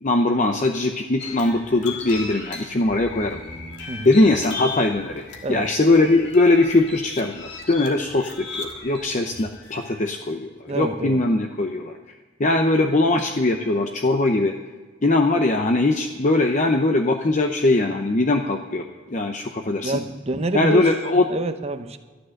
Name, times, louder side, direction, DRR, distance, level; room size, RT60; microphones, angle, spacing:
voice 1, 0.0-3.4 4.0-14.6 15.0-20.0 20.5-21.3, left 2 dB, 40° left, 4 dB, 0.7 m, -21 dB
sound 1, 1.2-10.1, left 3 dB, 60° left, 2.0 m, -37 dB
voice 2, 10.7-11.2 19.8-20.8 21.3-22.0, right 2 dB, 30° right, 8 dB, 0.8 m, -27 dB
12.5 x 11.5 x 6.5 m, 1.4 s
head